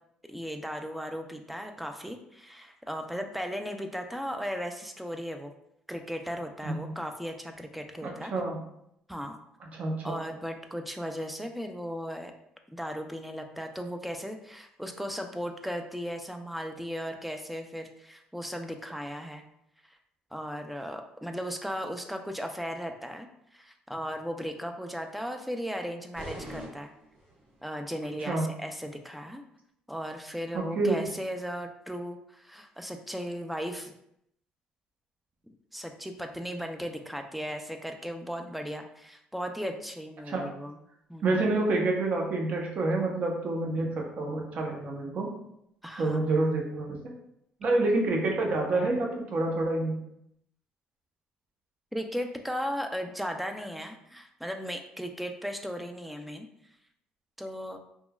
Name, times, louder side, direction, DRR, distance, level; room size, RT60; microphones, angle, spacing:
voice 1, 0.3-5.5 5.9-8.3 9.1-9.4 10.0-12.3 12.7-19.4 19.9-20.0 20.3-26.9 27.6-29.4 29.9-33.9 35.7-40.8 41.1-41.4 45.8-46.3 51.9-56.5 57.4-57.8, equal, 5° right, 5 dB, 0.3 m, -36 dB
voice 2, 8.0-8.6 9.7-10.2 28.2-28.5 30.5-31.0 40.3-40.5 41.2-45.3 46.0-47.0 47.6-50.0, right 2 dB, 50° right, 0 dB, 0.7 m, -28 dB
sound 1, 26.1-27.6, right 1 dB, 75° right, 1.2 m, -43 dB
3.0 x 2.2 x 2.2 m, 0.76 s
cardioid pair, 95°, 3 cm